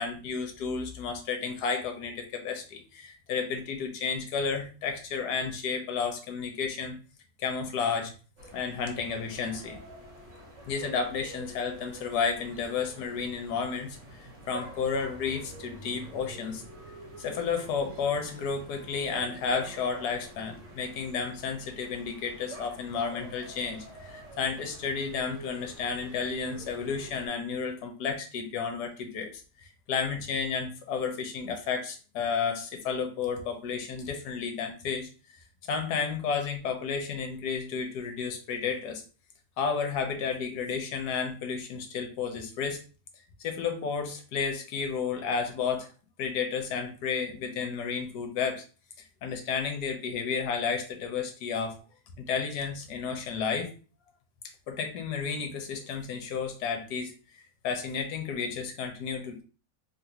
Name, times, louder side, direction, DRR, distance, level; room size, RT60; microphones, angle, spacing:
voice 1, 0.0-7.0 7.4-8.1 8.5-9.8 10.7-16.6 17.2-35.1 35.7-39.0 39.6-42.8 43.4-45.9 46.2-48.6 49.2-51.8 52.2-53.7 54.7-57.2 57.6-59.4, left 5 dB, 75° left, 4 dB, 1.2 m, -32 dB
sound 1, 8.4-27.3, right 1 dB, 50° right, 1.3 m, -47 dB
3.4 x 2.5 x 2.8 m, 0.36 s
omnidirectional pair, 1.9 m